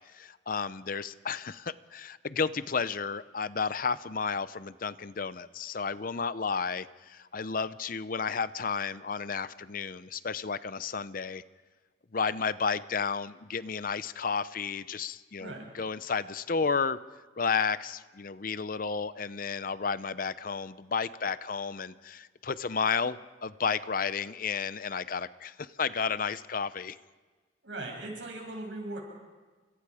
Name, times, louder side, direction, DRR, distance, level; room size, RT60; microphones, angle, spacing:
voice 1, 0.1-11.4 12.1-17.0 17.4-27.0, left 5 dB, 45° left, 15 dB, 0.6 m, -32 dB
voice 2, 15.4-15.7 27.6-29.0, right 2 dB, 75° right, 1 dB, 7.2 m, -39 dB
29.5 x 25.5 x 5.0 m, 1.4 s
head